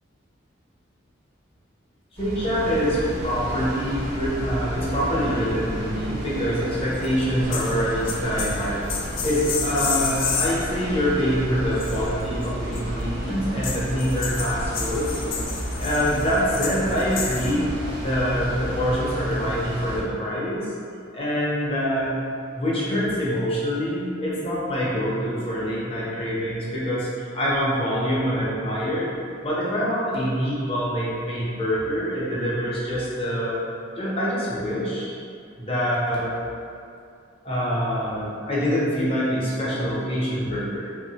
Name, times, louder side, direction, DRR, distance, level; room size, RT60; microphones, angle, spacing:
voice 1, 2.1-15.1 15.8-17.7 18.0-20.7 21.1-22.2 22.5-29.1 29.4-33.6 34.0-35.2 35.6-36.4 37.4-40.8, equal, 30° left, -7 dB, 0.6 m, -25 dB
sound 1, 2.2-20.0, equal, 50° right, 0.4 m, -32 dB
sound 2, 7.0-7.2 7.5-7.8 8.1-10.6 11.8-12.8 13.6-17.5, left 6 dB, 75° left, 0.3 m, -30 dB
3.3 x 2.1 x 2.7 m, 2.5 s
head